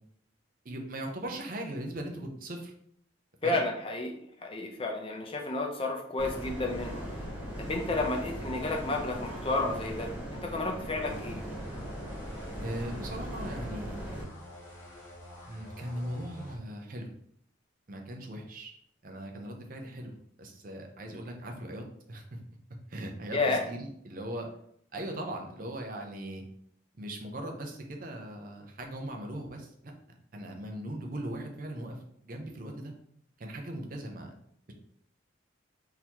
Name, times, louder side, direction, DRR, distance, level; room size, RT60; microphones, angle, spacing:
voice 1, 0.6-2.7 3.4-3.6 12.6-14.0 15.5-17.1 17.9-18.7 19.0-20.1 20.4-22.4 22.9-24.5 24.9-26.4 27.0-29.9 30.3-32.9 33.4-34.4, right 1 dB, 45° right, 2 dB, 0.6 m, -39 dB
voice 2, 3.4-7.0 7.6-11.4 23.3-23.6, left 2 dB, 30° left, 1 dB, 0.5 m, -31 dB
sound 1, 6.2-14.2, equal, 10° right, 0.8 m, -39 dB
sound 2, 11.0-16.6, equal, 10° left, 1.0 m, -48 dB
3.9 x 2.7 x 2.9 m, 0.68 s
head